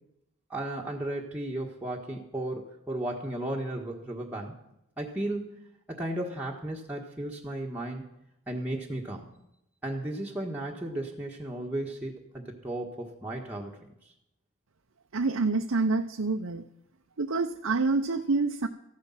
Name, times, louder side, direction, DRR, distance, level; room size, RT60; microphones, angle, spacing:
voice 1, 0.5-4.6 5.0-5.6 5.9-8.0 8.5-9.3 9.8-13.8, right 1 dB, 5° right, -3 dB, 1.4 m, -34 dB
voice 2, 15.1-16.6 17.2-18.7, right 3 dB, 65° right, 4 dB, 0.8 m, -27 dB
15.0 x 11.5 x 5.8 m, 0.83 s
head